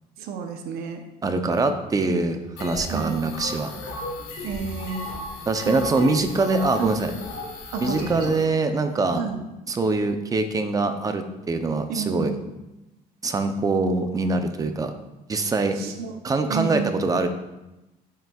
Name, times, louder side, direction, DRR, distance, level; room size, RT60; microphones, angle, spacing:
voice 1, 0.2-1.0 2.9-3.3 4.4-5.1 5.6-6.1 6.8-7.1 7.7-8.3 9.2-9.5 11.9-12.5 15.7-16.2 16.5-17.1, right 6 dB, 80° right, 5 dB, 0.8 m, -30 dB
voice 2, 1.2-3.7 5.5-7.1 7.8-9.2 9.7-12.3 13.2-14.9 15.3-15.8 16.2-17.3, right 3 dB, 25° right, 7 dB, 0.6 m, -23 dB
sound 1, 2.6-8.4, left 1 dB, 65° left, 1.9 m, -35 dB
9.0 x 5.4 x 2.3 m, 0.99 s
cardioid pair, 125°, 16 cm